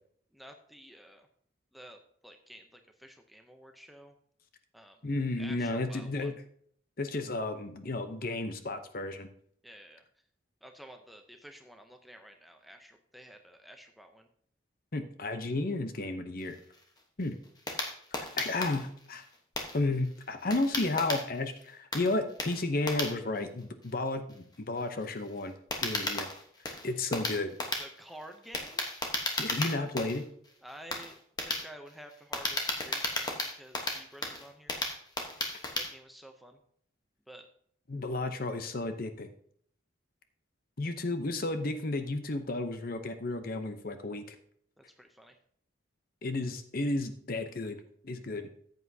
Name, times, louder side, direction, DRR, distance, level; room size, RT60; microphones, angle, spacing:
voice 1, 0.3-1.3 1.7-4.1 4.7-5.0 5.4-6.3 9.6-10.0 10.6-14.3 27.8-28.9 30.6-34.8 35.8-36.6 37.3-37.4 44.8-45.4, equal, ahead, 4 dB, 0.6 m, -51 dB
voice 2, 5.0-6.3 7.0-9.3 14.9-16.6 17.2-17.4 18.1-19.2 19.7-25.5 25.8-26.3 26.8-27.5 29.4-30.2 37.9-39.3 40.8-44.4 46.2-47.8 48.0-48.4, left 2 dB, 45° left, 8 dB, 0.7 m, -32 dB
sound 1, 16.4-21.6 21.9-35.9, left 2 dB, 20° left, 1.1 m, -35 dB
14.0 x 8.1 x 2.8 m, 0.63 s
head